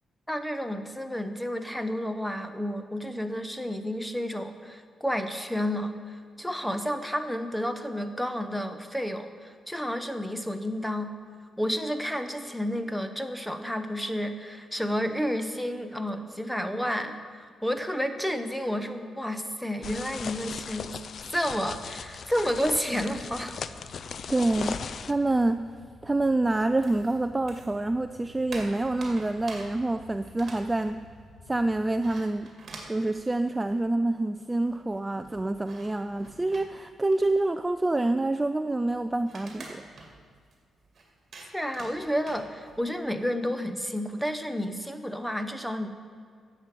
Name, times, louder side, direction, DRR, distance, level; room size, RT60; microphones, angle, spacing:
voice 1, 0.3-11.1 11.6-20.9 21.3-23.5 41.5-45.9, equal, ahead, 8 dB, 0.8 m, -31 dB
sound 1, 19.8-25.1, left 6 dB, 55° left, 0.4 m, -38 dB
sound 2, 21.6-32.2, left 1 dB, 30° left, 2.0 m, -53 dB
voice 2, 24.3-25.7 26.0-31.0 31.5-32.5 32.9-39.8, right 2 dB, 15° right, 10 dB, 0.3 m, -27 dB
sound 3, 26.8-27.8 28.1-34.0 34.3-34.4 34.6-43.0, right 3 dB, 45° right, 2.2 m, -48 dB
11.0 x 7.4 x 7.4 m, 2.1 s
cardioid pair, 110°, 0 cm